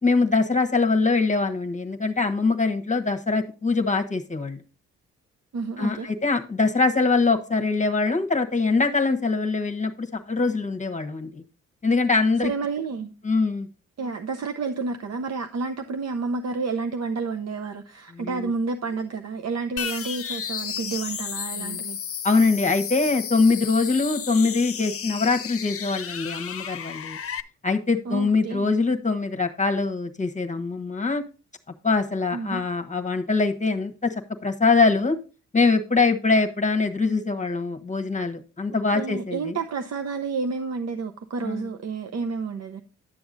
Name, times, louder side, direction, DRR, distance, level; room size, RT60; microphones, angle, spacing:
voice 1, 0.0-4.6 5.8-11.4 11.8-12.5 13.2-13.7 18.1-18.5 21.6-21.8 22.2-27.2 27.6-31.2 31.8-34.1 34.4-35.2 35.5-39.6 41.4-41.7, left 3 dB, 25° left, 1.3 m, -23 dB
voice 2, 5.5-6.1 12.4-13.1 14.0-22.0 28.1-28.7 32.3-32.6 38.9-42.8, right 4 dB, 55° right, 0.8 m, -30 dB
sound 1, 19.8-27.4, left 8 dB, 45° left, 0.7 m, -33 dB
11.0 x 6.9 x 2.6 m
supercardioid pair, 55°, 31 cm